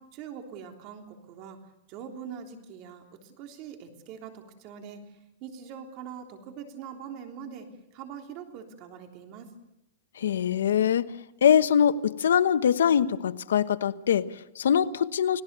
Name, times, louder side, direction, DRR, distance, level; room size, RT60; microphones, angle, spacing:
voice 1, 0.0-1.6 1.9-5.0 5.4-9.5, right 7 dB, 35° right, 4 dB, 3.3 m, -43 dB
voice 2, 10.2-11.1 11.4-15.4, left 8 dB, 90° left, 13 dB, 1.1 m, -23 dB
29.5 x 18.5 x 6.8 m, 0.91 s
supercardioid pair, 155°, 0 cm